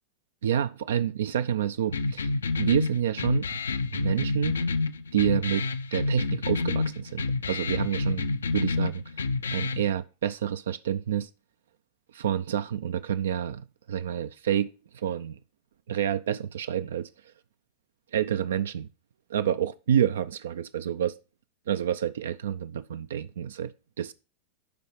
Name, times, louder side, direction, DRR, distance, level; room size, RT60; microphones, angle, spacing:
voice 1, 0.4-2.3 2.6-3.5 3.9-4.6 5.1-5.7 5.9-8.3 8.5-9.0 9.5-11.3 12.1-15.4 15.9-17.1 18.1-18.9 19.3-21.1 21.7-23.7 24.0-24.1, right 9 dB, 65° right, 0.3 m, -28 dB
sound 1, 1.9-9.9, left 3 dB, 70° left, 0.5 m, -29 dB
12.0 x 4.6 x 3.1 m
figure-of-eight pair, 90°, 0 cm